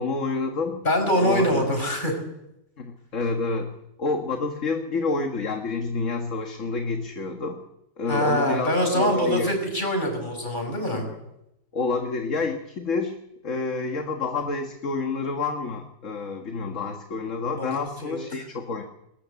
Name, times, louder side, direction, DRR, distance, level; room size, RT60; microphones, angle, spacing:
voice 1, 0.0-0.9 1.1-1.7 2.8-3.7 4.0-7.6 8.0-9.5 10.9-11.2 11.7-13.2 13.4-18.8, left 3 dB, 45° left, 4 dB, 1.8 m, -28 dB
voice 2, 0.8-2.2 8.1-11.0 17.6-18.2, equal, 25° left, 4 dB, 5.9 m, -24 dB
22.0 x 19.0 x 8.2 m, 0.85 s
omnidirectional pair, 2.0 m